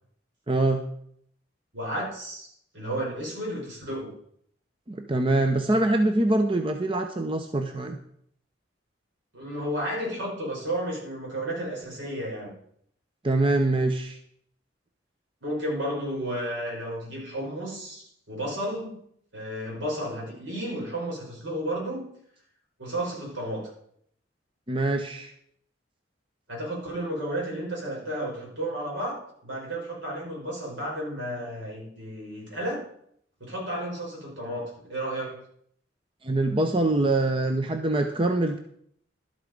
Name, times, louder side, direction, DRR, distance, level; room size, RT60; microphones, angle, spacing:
voice 1, 0.5-0.9 4.9-8.0 13.2-14.2 24.7-25.3 36.2-38.6, right 2 dB, 25° right, 6 dB, 0.7 m, -24 dB
voice 2, 1.7-4.1 9.3-12.5 15.4-19.0 19.3-22.1 22.8-23.7 26.5-32.8 33.4-35.4, right 1 dB, 75° right, -2 dB, 5.3 m, -32 dB
12.0 x 8.1 x 5.2 m, 0.67 s
head